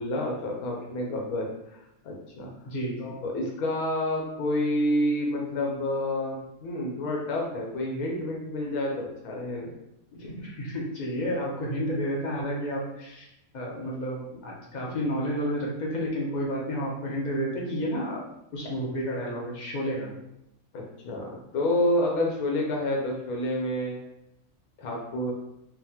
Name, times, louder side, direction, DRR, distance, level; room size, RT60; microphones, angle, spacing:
voice 1, 0.0-2.5 3.0-9.7 20.7-24.0 24.8-25.3, left 1 dB, 85° left, -1 dB, 1.1 m, -29 dB
voice 2, 2.7-3.2 10.1-13.3 13.5-18.2 18.5-20.1, equal, 60° left, -3 dB, 0.4 m, -31 dB
4.0 x 2.0 x 2.7 m, 0.83 s
omnidirectional pair, 1.5 m